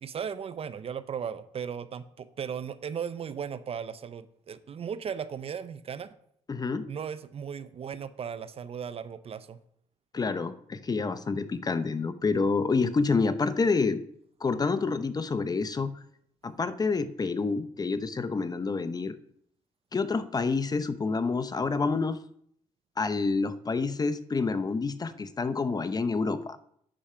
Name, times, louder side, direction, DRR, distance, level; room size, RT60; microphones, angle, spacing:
voice 1, 0.0-6.1 6.9-9.6, right 7 dB, 45° right, 14 dB, 0.6 m, -36 dB
voice 2, 6.5-6.9 10.1-14.0 14.4-15.9 16.4-19.1 19.9-22.2 23.0-26.6, left 4 dB, 30° left, 13 dB, 0.6 m, -28 dB
8.8 x 4.8 x 5.6 m, 0.68 s
supercardioid pair, 75°, 14 cm